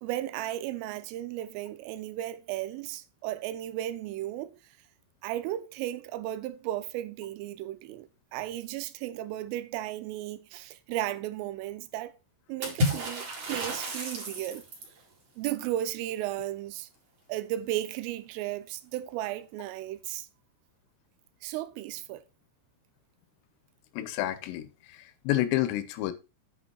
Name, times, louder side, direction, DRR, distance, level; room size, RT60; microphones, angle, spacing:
voice 1, 0.0-4.5 5.2-12.1 12.5-14.6 15.4-16.9 17.3-20.3 21.4-22.2, right 13 dB, 80° right, 3.2 m, -35 dB
Water / Splash splatter, 12.6-15.0, left 1 dB, 40° right, 2.4 m, -31 dB
voice 2, 23.9-26.1, left 14 dB, 80° left, 3.3 m, -30 dB
8.7 x 5.8 x 4.3 m
omnidirectional pair, 6.0 m